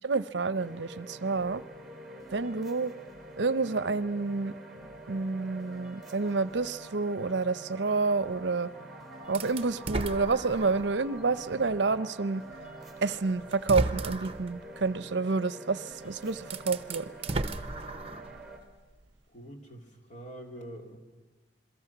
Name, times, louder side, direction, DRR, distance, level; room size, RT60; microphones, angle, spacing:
voice 1, 0.0-1.6 2.3-2.9 3.4-4.5 5.1-8.7 9.3-12.4 13.0-17.1, right 4 dB, 70° right, 15 dB, 0.7 m, -29 dB
sound 1, 0.5-18.6, right 1 dB, ahead, 3.5 m, -46 dB
sound 2, 9.3-11.0 11.5-11.6 12.8-12.9 13.5-14.5 15.9-16.0 16.4-18.4, right 2 dB, 35° right, 0.9 m, -34 dB
voice 2, 19.3-21.0, right 1 dB, 45° left, 2 dB, 3.0 m, -45 dB
28.0 x 22.5 x 6.0 m, 1.2 s
head